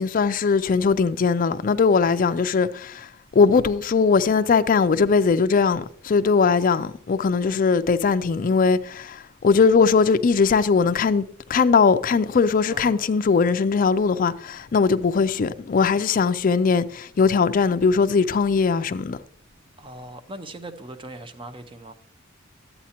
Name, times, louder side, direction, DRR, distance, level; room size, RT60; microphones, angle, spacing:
voice 1, 0.0-3.1 3.3-19.2, left 5 dB, 40° left, 0.4 m, -20 dB
voice 2, 12.7-13.1 19.8-21.9, right 1 dB, 25° right, 0.6 m, -40 dB
12.5 x 8.3 x 2.9 m
head